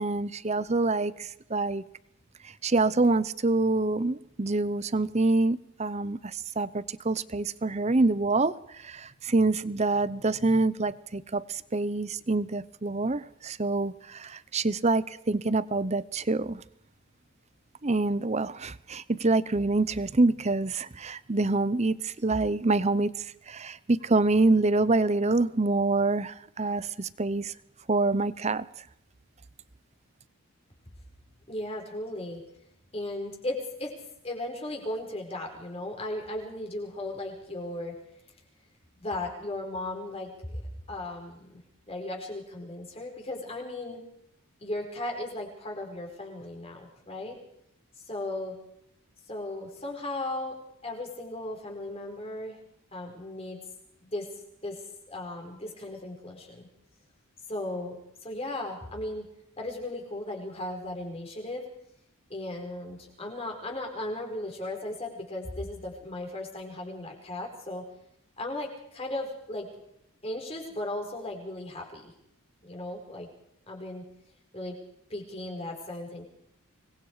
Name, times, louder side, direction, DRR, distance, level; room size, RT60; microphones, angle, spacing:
voice 1, 0.0-1.8 2.4-16.6 17.8-27.5 27.9-28.7, right 3 dB, 30° right, 16 dB, 0.7 m, -26 dB
voice 2, 31.5-32.4 32.9-33.9 34.2-38.0 38.9-40.6 40.9-41.6 41.9-44.0 44.6-47.4 48.1-48.6 49.3-50.6 50.8-52.6 52.9-53.6 54.0-54.3 54.6-56.7 57.5-59.3 59.6-61.6 62.3-67.8 68.4-69.7 70.2-72.1 72.6-73.3 73.7-74.1 74.5-74.8 75.1-76.2, left 1 dB, 25° left, 1 dB, 5.0 m, -36 dB
26.0 x 21.5 x 4.9 m, 0.75 s
head